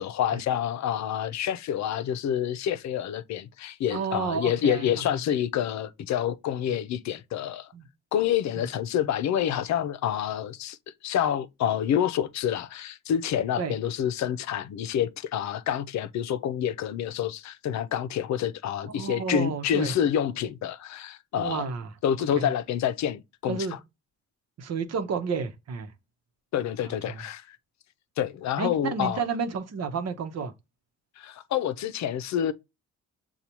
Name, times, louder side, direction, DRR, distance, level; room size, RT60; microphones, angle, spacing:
voice 1, 0.0-7.7 8.1-10.8 11.0-21.7 22.0-23.6 26.5-27.6 28.2-29.2 31.2-32.5, left 9 dB, 65° left, 0.6 m, -28 dB
voice 2, 3.9-4.9 7.7-7.9 8.6-8.7 13.6-13.7 18.9-19.9 21.4-21.9 22.3-22.5 23.5-23.7 24.6-25.9 26.8-27.2 28.6-30.5, right 5 dB, 60° right, 0.9 m, -31 dB
6.8 x 2.4 x 2.9 m
cardioid pair, 90°, 30 cm